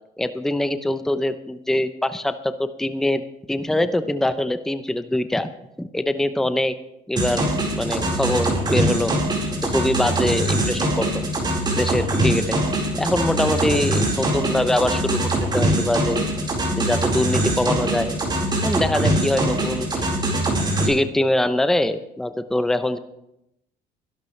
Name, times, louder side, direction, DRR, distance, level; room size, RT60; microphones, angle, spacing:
voice 1, 0.2-2.5 2.8-3.2 3.5-5.5 5.8-6.7 7.1-9.2 9.4-11.2 11.8-12.6 13.0-16.3 16.8-18.2 18.6-20.1 20.9-23.0, left 1 dB, ahead, 10 dB, 0.7 m, -23 dB
sound 1, 7.2-20.9, right 1 dB, 25° right, 4.5 m, -23 dB
23.0 x 12.0 x 3.2 m, 0.83 s
cardioid pair, 110°, 17 cm